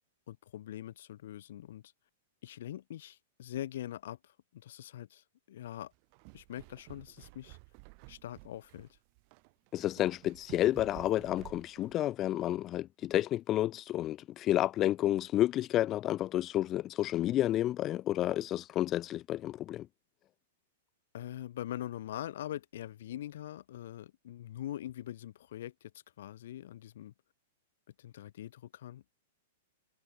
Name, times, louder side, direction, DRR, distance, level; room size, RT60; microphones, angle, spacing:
voice 1, 0.3-1.9 2.4-5.9 6.3-7.6 8.1-8.9 21.1-25.9 26.2-27.1 28.0-29.1, left 12 dB, 65° left, 7.0 m, -43 dB
sound 1, 5.9-12.0, right 40 dB or more, 50° right, 7.7 m, -53 dB
voice 2, 9.7-19.9, left 13 dB, 35° left, 1.8 m, -30 dB
hypercardioid pair, 110°, 0 cm